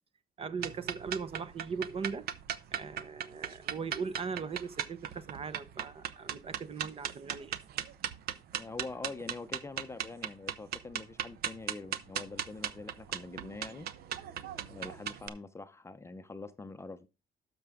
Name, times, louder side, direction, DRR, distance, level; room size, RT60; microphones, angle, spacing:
voice 1, 0.4-2.3 2.7-7.6, right 5 dB, 35° right, 1.0 m, -39 dB
sound 1, 0.6-15.3, right 10 dB, 65° right, 0.9 m, -38 dB
voice 2, 8.6-13.9 14.7-17.1, left 3 dB, 15° left, 0.7 m, -44 dB
12.5 x 6.1 x 3.6 m
cardioid pair, 110°, 17 cm